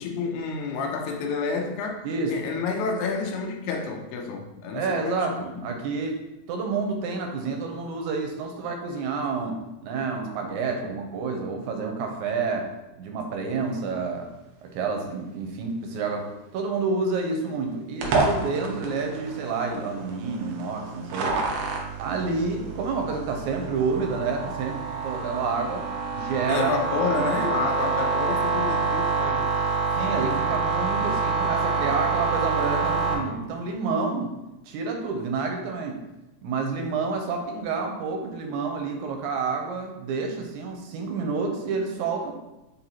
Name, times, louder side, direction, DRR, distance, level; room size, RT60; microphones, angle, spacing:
voice 1, 0.0-5.4 26.5-29.6, left 4 dB, 80° left, 3 dB, 1.9 m, -29 dB
voice 2, 4.7-6.2 6.5-9.6 9.8-12.7 13.0-14.3 14.6-16.3 16.5-21.4 22.0-25.9 26.1-26.7 27.1-27.5 30.0-34.3 34.7-36.0 36.4-42.4, right 4 dB, 90° right, 3 dB, 2.1 m, -29 dB
sound 1, 18.0-33.1, right 4 dB, 70° right, 1.5 m, -27 dB
4.7 x 3.9 x 2.8 m, 0.97 s
omnidirectional pair, 3.4 m